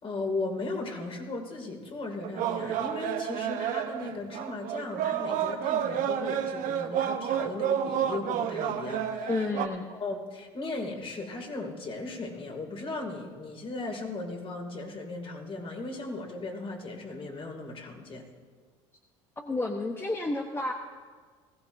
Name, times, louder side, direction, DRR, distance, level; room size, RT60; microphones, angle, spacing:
voice 1, 0.0-9.5 9.9-18.3, left 3 dB, 35° left, 2 dB, 2.5 m, -37 dB
sound 1, 2.2-9.7, right 9 dB, 60° right, 0.9 m, -30 dB
voice 2, 9.3-9.9 19.4-20.7, left 2 dB, 15° left, 3 dB, 1.0 m, -30 dB
19.5 x 15.5 x 2.6 m, 1.5 s
hypercardioid pair, 75°, 15 cm